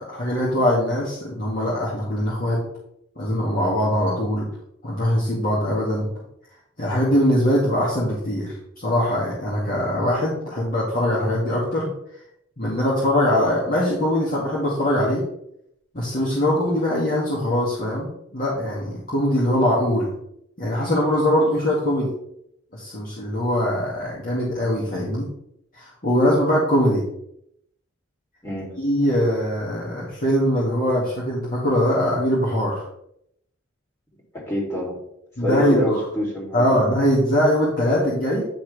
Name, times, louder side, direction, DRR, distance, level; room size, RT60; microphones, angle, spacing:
voice 1, 0.0-2.6 3.2-4.5 4.8-6.1 6.8-11.9 12.6-15.2 15.9-20.1 20.6-22.1 22.7-25.3 25.8-27.0 28.8-32.8 35.4-36.0 36.5-38.4, equal, 45° left, -7 dB, 2.1 m, -22 dB
voice 2, 28.4-28.7 34.5-35.0 35.4-36.8, equal, 15° left, -4 dB, 2.8 m, -26 dB
10.0 x 5.9 x 3.3 m, 0.76 s
head